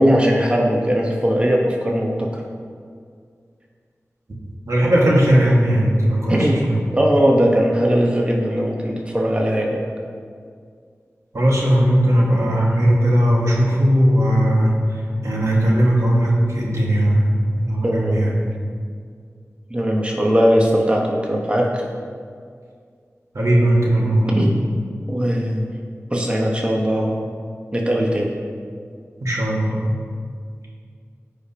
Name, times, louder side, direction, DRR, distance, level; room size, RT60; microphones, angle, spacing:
voice 1, 0.0-2.4 6.3-6.6 6.9-9.8 17.8-18.3 19.7-21.8 24.4-24.8 25.1-25.7 26.1-27.3 27.7-28.3, equal, 20° right, -1 dB, 1.0 m, -19 dB
voice 2, 4.7-6.8 11.3-14.7 15.2-18.4 23.3-24.3 29.2-29.8, equal, 75° right, -4 dB, 1.6 m, -17 dB
15.0 x 5.2 x 2.8 m, 2.1 s
wide cardioid pair, 65°, 5 cm